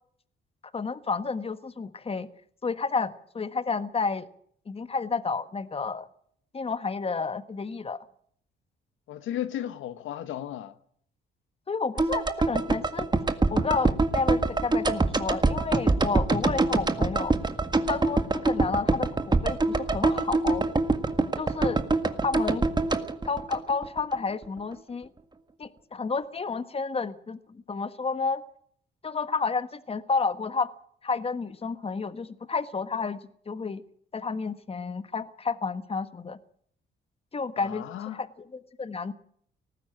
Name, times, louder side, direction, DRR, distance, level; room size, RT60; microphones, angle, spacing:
voice 1, 0.7-2.3 2.6-4.3 4.7-6.1 6.5-8.0 11.7-13.1 13.5-17.3 17.9-20.6 21.4-21.8 22.2-22.6 23.2-25.1 25.6-27.4 27.7-28.4 29.0-30.7 31.0-33.2 33.5-33.8 34.1-36.4 37.3-37.8 38.1-39.1, left 4 dB, 30° left, 1.5 m, -30 dB
voice 2, 9.1-10.7 37.6-38.2, left 11 dB, 80° left, 1.3 m, -34 dB
sound 1, 12.0-24.2 24.4-24.5, right 3 dB, 20° right, 1.8 m, -25 dB
19.0 x 15.0 x 9.2 m
cardioid pair, 90°, 20 cm